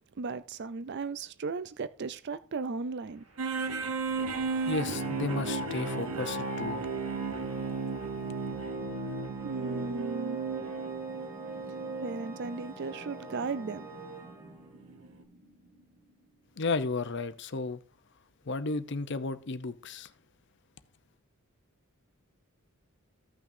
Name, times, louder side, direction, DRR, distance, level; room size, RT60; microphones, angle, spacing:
voice 1, 0.2-3.2 9.4-10.4 12.0-13.9, right 4 dB, 50° right, 0.4 m, -36 dB
sound 1, 3.0-17.0, right 1 dB, 70° right, 2.1 m, -53 dB
sound 2, 3.4-14.3 14.9-15.0, right 4 dB, 85° right, 1.0 m, -35 dB
Organ, 4.2-14.9, right 1 dB, 10° right, 1.4 m, -49 dB
voice 2, 4.6-6.9 16.6-17.8 18.4-20.1, left 3 dB, 55° left, 0.7 m, -33 dB
15.5 x 6.0 x 2.7 m
head